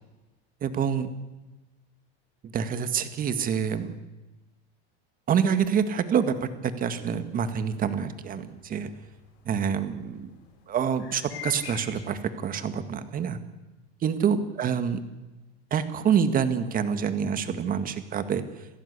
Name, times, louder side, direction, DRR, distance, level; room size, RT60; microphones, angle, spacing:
voice 1, 0.6-1.1 2.5-3.9 5.3-8.9 9.5-10.3 10.7-13.4 14.0-15.0 15.7-18.4, right 7 dB, 25° right, 10 dB, 1.9 m, -27 dB
sound 1, 7.0-12.0, left 10 dB, 75° left, 7.2 m, -44 dB
27.0 x 15.5 x 8.3 m, 1.1 s
supercardioid pair, 140°, 31 cm